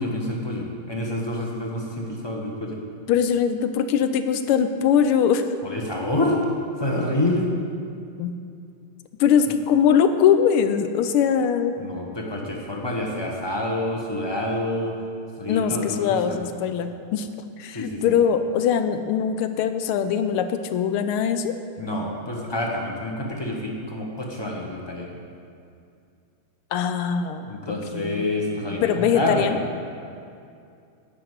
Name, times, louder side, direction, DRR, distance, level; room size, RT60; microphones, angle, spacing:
voice 1, 0.0-2.8 5.6-6.4 6.8-7.5 11.8-15.0 15.4-16.4 17.7-18.0 21.8-25.1 27.5-29.6, left 1 dB, 25° left, -1 dB, 0.5 m, -27 dB
voice 2, 3.1-5.5 8.2-8.3 9.2-11.7 15.5-17.3 17.6-21.6 26.7-28.3 28.7-29.6, left 8 dB, 85° left, 9 dB, 1.5 m, -22 dB
9.9 x 5.9 x 8.0 m, 2.5 s
omnidirectional pair, 2.4 m